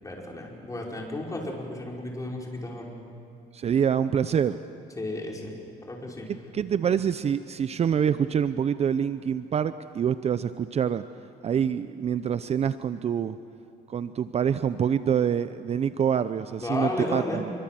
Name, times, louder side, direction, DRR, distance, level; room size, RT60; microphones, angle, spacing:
voice 1, 0.0-2.9 5.0-5.6 5.9-6.3 16.6-17.4, left 1 dB, 20° left, -1 dB, 5.4 m, -33 dB
voice 2, 3.5-4.6 6.5-11.0 11.4-13.4 13.9-17.5, right 8 dB, 40° right, 13 dB, 0.6 m, -26 dB
27.0 x 24.0 x 7.7 m, 2.5 s
cardioid pair, 110°, 17 cm